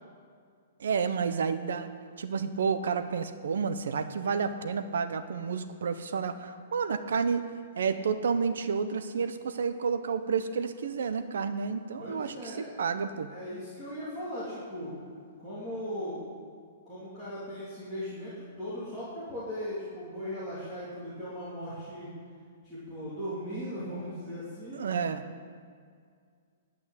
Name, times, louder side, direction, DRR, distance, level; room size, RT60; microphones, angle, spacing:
voice 1, 0.8-1.9 2.2-7.5 7.8-13.3 24.7-25.2, right 6 dB, 80° right, 10 dB, 0.9 m, -30 dB
voice 2, 12.0-12.8 13.3-14.9 15.4-16.2 16.8-22.1 22.6-24.8, equal, 5° right, -13 dB, 2.9 m, -38 dB
11.0 x 6.1 x 9.0 m, 2.1 s
hypercardioid pair, 170°, 0 cm